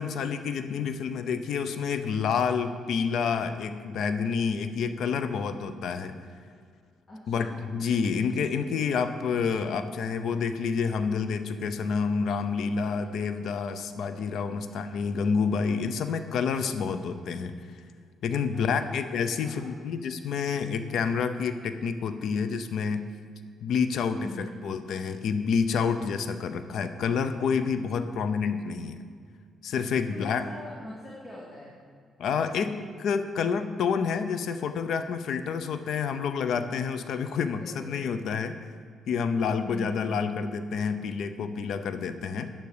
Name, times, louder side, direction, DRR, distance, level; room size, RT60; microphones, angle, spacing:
voice 1, 0.0-6.2 7.3-17.5 18.2-23.0 23.6-29.0 29.6-30.4 32.2-38.6 39.1-42.5, left 6 dB, 70° left, 10 dB, 0.7 m, -28 dB
voice 2, 7.1-7.8 12.9-13.0 14.7-15.0 18.5-18.9 19.4-19.7 24.2-24.5 30.1-31.7 37.5-37.9 39.6-40.2, left 1 dB, 30° left, -5 dB, 2.5 m, -43 dB
10.5 x 9.5 x 5.0 m, 2.1 s
cardioid pair, 90°, 0 cm